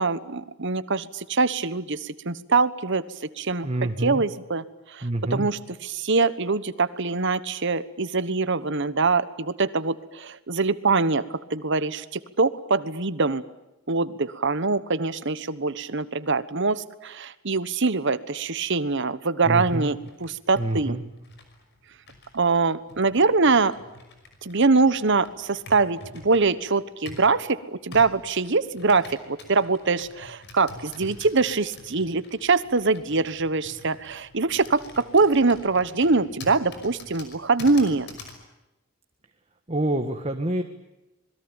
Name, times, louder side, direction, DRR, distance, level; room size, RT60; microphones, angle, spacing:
voice 1, 0.0-3.0 3.4-13.4 13.9-21.0 22.3-23.7 24.4-38.1, right 4 dB, 55° right, 14 dB, 1.2 m, -23 dB
voice 2, 3.6-4.2 5.0-5.5 19.5-19.9 20.6-21.0 39.7-40.6, right 1 dB, 30° right, 6 dB, 1.5 m, -27 dB
Computer keyboard, 19.5-27.4 27.9-38.4, left 2 dB, 55° left, 5.7 m, -46 dB
27.0 x 21.5 x 9.0 m, 0.98 s
head